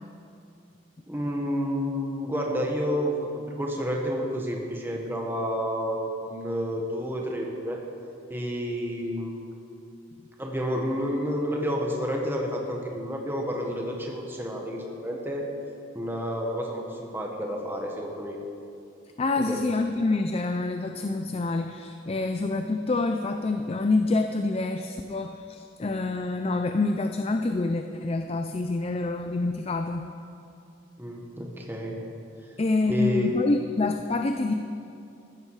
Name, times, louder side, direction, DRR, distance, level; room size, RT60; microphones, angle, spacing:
voice 1, 1.1-7.8 8.3-9.4 10.4-15.4 15.9-18.4 19.4-19.6 31.0-32.0 32.9-33.3, equal, 10° right, 0 dB, 1.5 m, -30 dB
voice 2, 19.2-30.1 32.6-34.5, left 3 dB, 30° left, 6 dB, 0.4 m, -27 dB
14.5 x 13.0 x 4.8 m, 2.6 s
head